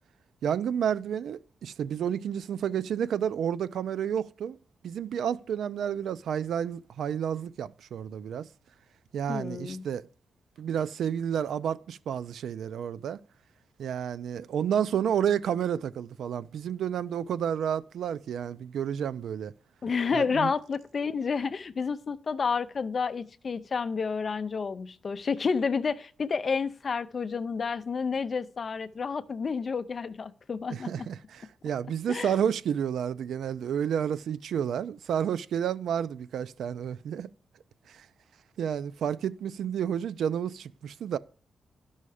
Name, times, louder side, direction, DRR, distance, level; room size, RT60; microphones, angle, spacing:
voice 1, 0.4-4.6 4.8-8.5 9.1-10.0 10.6-13.2 13.8-19.5 20.1-20.5 30.7-37.3 37.9-38.1 38.6-41.2, right 8 dB, 80° right, 0.4 m, -30 dB
voice 2, 9.3-9.8 19.8-31.1 32.1-32.4, left 5 dB, 35° left, 0.5 m, -30 dB
12.5 x 5.5 x 4.9 m
wide cardioid pair, 170°, 0 cm